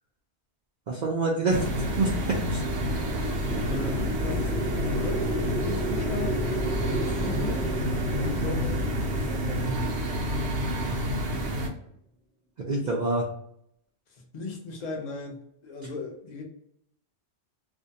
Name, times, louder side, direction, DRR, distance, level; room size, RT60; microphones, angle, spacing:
voice 1, 0.9-1.6 1.9-2.6 12.7-13.3, right 2 dB, 55° right, -3 dB, 0.5 m, -26 dB
sound 1, 1.5-11.7, equal, 80° right, 0.9 m, -29 dB
sound 2, 1.6-8.5, left 1 dB, 80° left, 0.9 m, -38 dB
sound 3, 2.7-11.1, right 1 dB, 5° left, 0.4 m, -34 dB
voice 2, 3.6-5.3 5.6-6.4 6.8-7.6 8.2-8.9 9.3-9.9 14.1-15.4 15.6-16.4, left 2 dB, 45° left, 1 dB, 0.7 m, -37 dB
2.5 x 2.1 x 2.6 m, 0.72 s
omnidirectional pair, 1.1 m